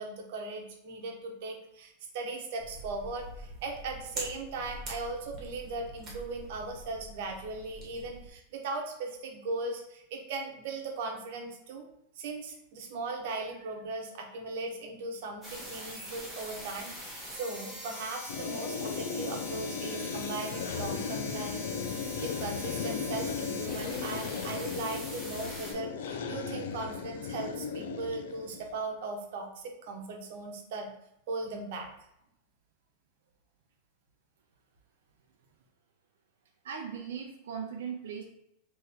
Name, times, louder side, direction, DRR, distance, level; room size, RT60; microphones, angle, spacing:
voice 1, 0.0-11.9 12.2-30.9 31.3-31.9, right 3 dB, 60° right, 2 dB, 1.0 m, -38 dB
sound 1, 2.6-8.3, right 1 dB, 20° right, 1.5 m, -44 dB
sound 2, 15.4-25.7, left 1 dB, 5° right, 1.3 m, -43 dB
sound 3, 18.3-28.7, left 6 dB, 80° left, 0.5 m, -36 dB
voice 2, 36.6-38.2, right 7 dB, 90° right, 1 dB, 0.6 m, -38 dB
3.6 x 3.1 x 4.4 m, 0.78 s
supercardioid pair, 160°, 0 cm